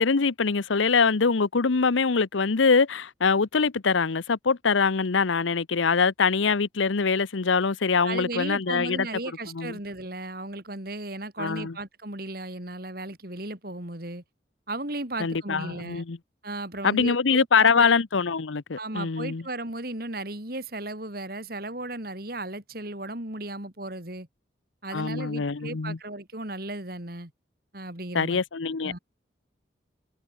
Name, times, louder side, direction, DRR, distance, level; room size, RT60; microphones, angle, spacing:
voice 1, 0.0-9.1 9.5-9.7 11.4-11.7 15.2-16.2 16.8-19.4 24.9-26.0 28.1-29.0, left 5 dB, 85° left, 0.8 m, -23 dB
voice 2, 8.0-14.2 14.7-16.0 16.4-17.9 18.8-24.3 24.8-27.3 27.7-28.4 28.8-29.0, right 2 dB, 50° right, 3.5 m, -35 dB
head